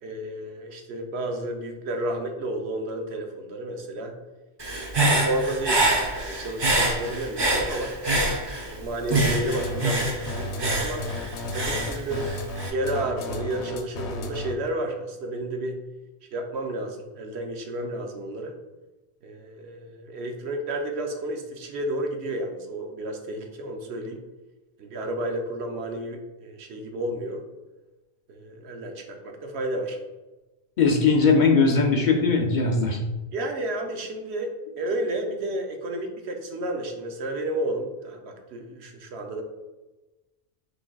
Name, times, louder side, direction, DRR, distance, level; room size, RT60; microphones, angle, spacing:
voice 1, 0.0-4.2 4.8-7.9 8.5-11.1 11.5-12.3 12.7-15.8 16.3-18.5 19.2-24.2 24.8-27.4 28.3-30.0 33.3-34.5 34.8-39.4, right 1 dB, 80° right, 3 dB, 0.9 m, -31 dB
Human voice / Breathing, 4.6-8.8 9.1-12.7, right 2 dB, 30° right, 0.5 m, -25 dB
sound 1, 9.1-14.7, left 2 dB, 90° left, 0.9 m, -33 dB
voice 2, 30.8-33.0, left 4 dB, 55° left, 1 dB, 0.6 m, -20 dB
6.0 x 3.3 x 2.2 m, 1.1 s
omnidirectional pair, 1.1 m